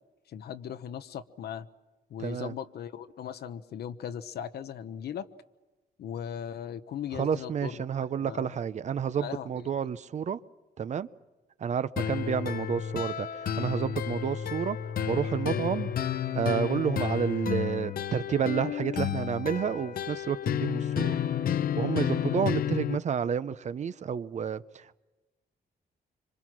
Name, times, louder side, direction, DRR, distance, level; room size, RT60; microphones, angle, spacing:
voice 1, 0.3-1.7 2.1-5.3 6.0-7.9 8.2-8.6 9.2-9.7, left 9 dB, 90° left, 1.1 m, -38 dB
voice 2, 2.2-2.5 7.1-10.4 10.8-11.1 11.6-14.8 15.1-15.9 16.3-21.2 21.8-25.0, right 7 dB, 45° right, 0.7 m, -30 dB
sound 1, 12.0-23.0, left 9 dB, 65° left, 0.8 m, -31 dB
26.5 x 26.0 x 6.2 m
wide cardioid pair, 155°, 16 cm